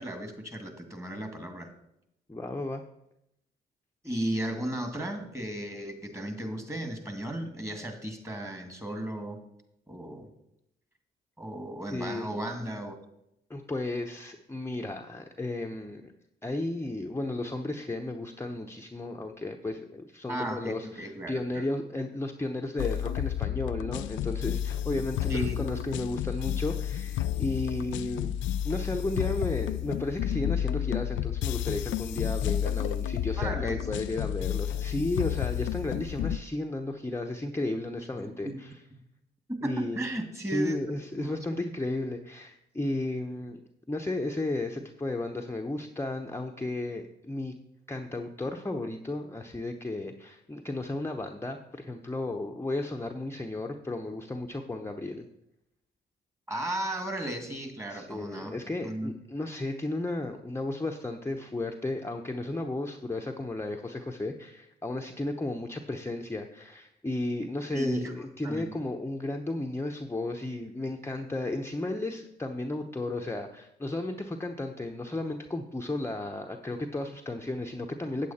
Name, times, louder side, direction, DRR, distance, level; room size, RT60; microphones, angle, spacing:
voice 1, 0.0-1.7 4.0-9.4 9.9-10.3 11.4-13.0 20.3-21.6 25.3-25.6 33.4-33.8 38.1-38.6 39.5-40.8 41.2-41.4 56.5-59.1 67.7-68.1 68.4-68.8, right 1 dB, 15° right, 5 dB, 2.2 m, -35 dB
voice 2, 2.3-2.8 11.9-12.3 13.5-16.1 16.4-28.4 28.6-38.8 39.6-40.1 40.5-43.6 43.9-47.5 47.9-55.3 57.9-78.3, left 2 dB, 10° left, 3 dB, 0.9 m, -34 dB
sound 1, 22.8-36.4, left 11 dB, 70° left, 0.4 m, -31 dB
8.4 x 8.3 x 4.3 m, 0.81 s
hypercardioid pair, 45°, 21 cm